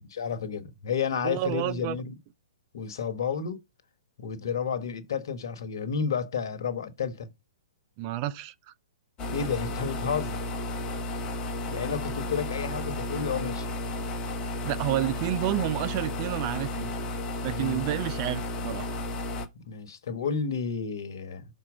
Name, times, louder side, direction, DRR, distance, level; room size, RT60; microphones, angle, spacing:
voice 1, 0.1-2.2 2.7-3.6 4.2-7.3 9.3-10.4 11.7-13.7 17.4-17.9 19.5-21.4, left 6 dB, 65° left, 1.3 m, -31 dB
voice 2, 1.2-2.0 8.0-8.5 14.6-16.9 17.4-18.9, right 13 dB, 40° right, 0.5 m, -30 dB
sound 1, 9.2-19.5, left 2 dB, 30° left, 1.1 m, -33 dB
6.1 x 4.5 x 4.7 m
hypercardioid pair, 120°, 2 cm